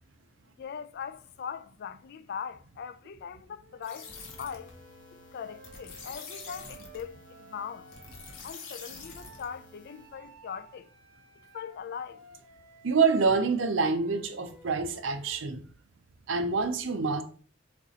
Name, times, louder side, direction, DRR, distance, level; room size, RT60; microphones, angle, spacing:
voice 1, 0.6-4.1 4.4-4.7 5.1-7.9 8.4-10.9 11.5-12.2, left 7 dB, 55° left, 0.3 m, -40 dB
Wind instrument woodwind instrument, 3.6-9.4 9.8-15.5, right 3 dB, 40° right, 1.2 m, -55 dB
sound 1, 3.8-10.2, left 4 dB, 80° left, 1.1 m, -47 dB
voice 2, 12.8-15.6 16.3-17.2, right 4 dB, 70° right, 0.6 m, -26 dB
6.5 x 2.9 x 2.8 m
head